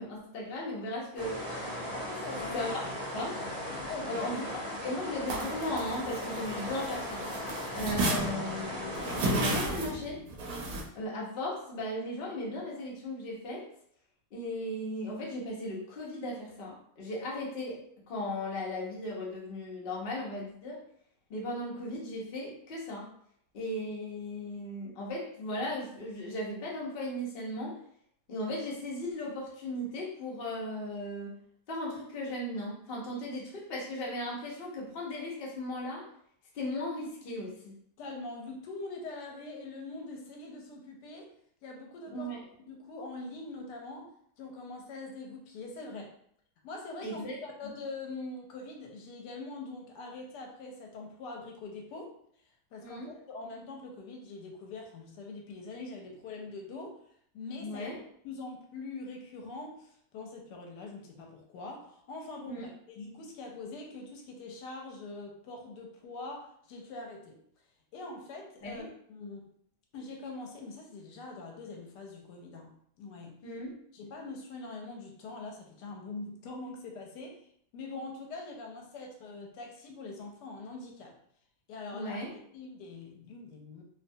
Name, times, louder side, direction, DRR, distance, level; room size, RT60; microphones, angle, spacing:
voice 1, 0.0-1.9 2.5-2.7 3.1-3.4 4.1-4.5 4.8-7.3 7.7-9.0 9.3-10.2 10.9-13.7 14.3-17.8 18.1-20.8 21.3-23.1 23.5-27.8 28.3-31.3 31.7-36.1 36.5-37.7 42.1-42.4 47.0-47.4 52.8-53.1 57.6-58.0 62.5-62.7 68.6-68.9 73.4-73.8 81.9-82.3, left 1 dB, 50° left, -4 dB, 0.7 m, -37 dB
sound 1, 1.2-9.5, left 1 dB, 45° right, 1.0 m, -37 dB
voice 2, 2.0-2.7 3.9-4.3 38.0-41.3 41.6-42.3 42.7-44.1 44.4-46.1 46.6-52.1 52.7-57.0 57.3-57.9 58.2-67.4 67.9-69.5 69.9-73.4 73.9-77.4 77.7-81.1 81.7-83.8, left 3 dB, 80° left, 1 dB, 1.2 m, -43 dB
sound 2, 5.3-7.0 7.2-10.8, right 1 dB, 75° right, 1.0 m, -32 dB
2.7 x 2.2 x 2.6 m, 0.66 s
omnidirectional pair, 1.8 m